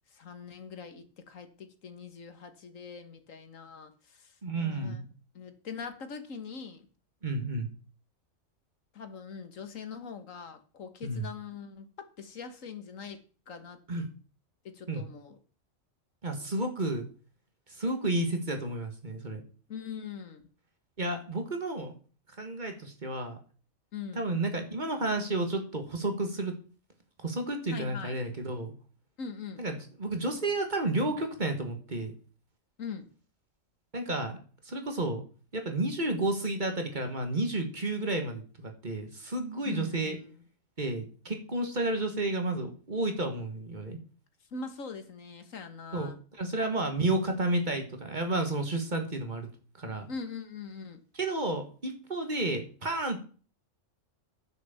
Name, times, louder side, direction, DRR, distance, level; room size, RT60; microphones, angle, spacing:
voice 1, 0.1-5.0 5.3-6.9 8.9-13.8 14.6-15.4 19.7-20.4 23.9-24.3 27.7-28.2 29.2-29.6 32.8-33.1 39.7-40.3 44.5-46.2 50.1-51.0, left 5 dB, 85° left, 9 dB, 1.8 m, -42 dB
voice 2, 4.4-5.0 7.2-7.7 11.0-11.3 13.9-14.0 14.9-15.0 16.2-17.1 17.7-19.4 21.0-21.9 22.4-23.4 24.2-26.5 27.2-28.7 29.6-32.1 33.9-34.4 34.6-35.2 35.5-40.2 40.8-44.0 45.9-46.1 46.4-49.5 49.8-50.1 51.1-53.2, right 2 dB, 35° right, 5 dB, 2.0 m, -31 dB
9.7 x 6.5 x 7.1 m, 0.39 s
omnidirectional pair, 1.3 m